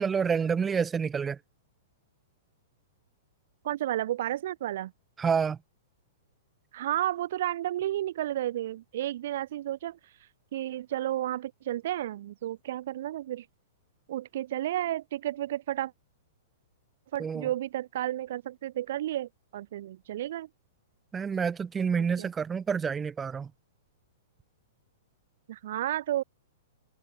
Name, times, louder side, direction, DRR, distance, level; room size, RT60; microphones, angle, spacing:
voice 1, 0.0-1.4 5.2-5.6 17.2-17.5 21.1-23.5, right 6 dB, 15° right, 1.0 m, -28 dB
voice 2, 3.6-4.9 6.7-10.0 10.5-13.5 14.1-15.9 17.1-20.5 22.0-22.3 25.5-26.2, right 13 dB, 60° right, 4.9 m, -32 dB
hypercardioid pair, 120°, 0 cm